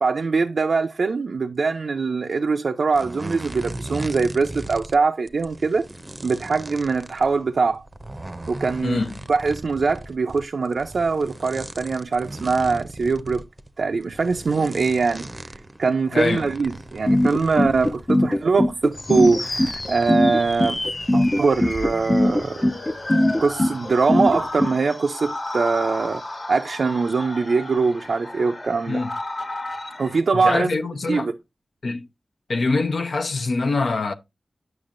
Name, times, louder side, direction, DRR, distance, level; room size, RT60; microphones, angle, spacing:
voice 1, 0.0-5.8 6.2-7.8 8.5-9.0 9.3-13.4 13.8-15.5 15.8-20.8 21.1-22.7 23.4-26.2 26.5-29.0 30.0-30.8 31.1-31.3, right 4 dB, 80° right, 0.4 m, -22 dB
sound 1, 2.9-5.0 5.3-18.2 18.7-21.6 21.9-22.2, right 1 dB, 30° right, 0.5 m, -38 dB
voice 2, 8.8-9.1 16.1-16.5 28.9-29.1 30.3-31.3 31.8-32.1 32.5-34.1, left 3 dB, 75° left, 0.6 m, -24 dB
sound 2, 17.1-24.7, left 1 dB, 25° left, 0.4 m, -20 dB
sound 3, 18.9-30.2, left 2 dB, 60° left, 1.3 m, -33 dB
8.8 x 5.9 x 2.5 m
cardioid pair, 50°, 0 cm